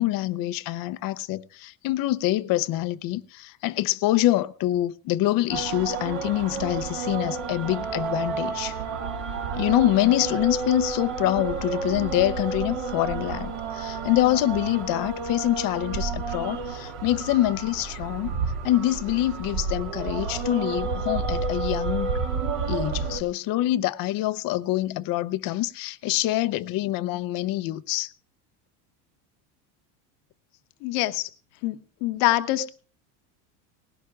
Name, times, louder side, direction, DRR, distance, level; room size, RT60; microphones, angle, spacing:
voice 1, 0.0-8.8 9.5-18.4 18.6-22.1 22.7-28.1, left 15 dB, 45° left, 0.7 m, -25 dB
sound 1, 5.5-23.2, right 5 dB, 60° right, 2.5 m, -30 dB
voice 2, 30.8-31.3 31.6-32.7, left 16 dB, 70° left, 1.1 m, -25 dB
19.0 x 16.5 x 2.4 m
supercardioid pair, 130°, 48 cm